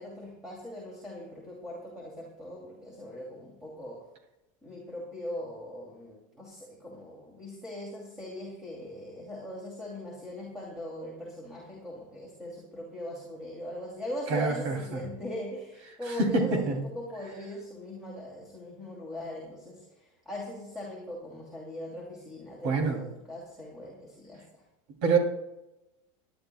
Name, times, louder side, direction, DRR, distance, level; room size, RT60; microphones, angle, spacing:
voice 1, 0.0-4.0 4.6-24.6, left 1 dB, 5° right, -4 dB, 2.6 m, -40 dB
voice 2, 14.3-14.7 16.2-16.8 22.6-23.0 25.0-25.2, right 4 dB, 60° right, 2 dB, 2.9 m, -25 dB
23.5 x 10.5 x 2.3 m, 0.97 s
supercardioid pair, 150°, 17 cm